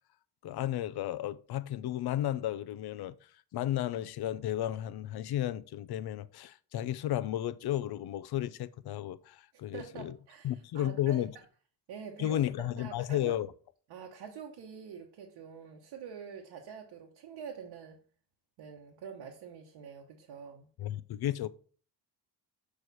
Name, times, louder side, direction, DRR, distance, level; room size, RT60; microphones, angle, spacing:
voice 1, 0.4-3.2 3.5-10.1 10.4-11.3 12.2-13.5 20.8-21.5, left 12 dB, 60° left, 0.6 m, -33 dB
voice 2, 9.7-11.2 11.9-13.3 13.9-18.0 18.6-20.7, right 7 dB, 75° right, 1.1 m, -46 dB
6.3 x 4.8 x 4.1 m
cardioid pair, 95°, 43 cm